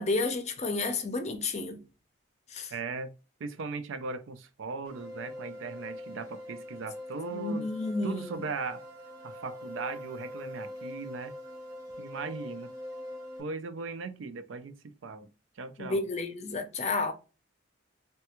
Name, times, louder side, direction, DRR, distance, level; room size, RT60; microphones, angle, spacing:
voice 1, 0.0-1.8 2.5-2.7 7.3-8.4 15.8-17.1, left 3 dB, 35° left, 0.5 m, -31 dB
voice 2, 2.7-3.1 3.4-7.7 8.0-8.8 9.2-11.3 12.0-12.7 13.4-15.3 15.6-16.1, right 4 dB, 80° right, 0.4 m, -38 dB
sound 1, 4.8-13.4, left 1 dB, 15° right, 0.8 m, -43 dB
3.3 x 2.2 x 2.9 m
head